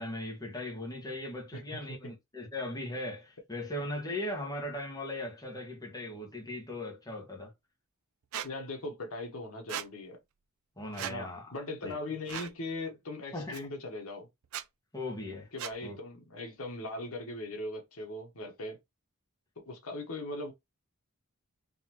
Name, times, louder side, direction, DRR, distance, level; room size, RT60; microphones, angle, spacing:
voice 1, 0.0-7.5 10.8-11.5 11.8-12.0 13.3-13.6 14.9-15.5 15.8-16.0, left 1 dB, 20° left, 1.3 m, -38 dB
voice 2, 1.5-2.1 8.4-10.2 11.0-14.3 15.5-18.8 19.7-20.5, left 2 dB, 80° left, 1.2 m, -39 dB
Squeak, 8.3-8.5 9.7-9.9 10.9-11.2 12.3-12.5 13.5-13.6 14.4-14.7 15.6-15.8, right 10 dB, 75° right, 0.4 m, -37 dB
4.0 x 3.0 x 3.0 m
head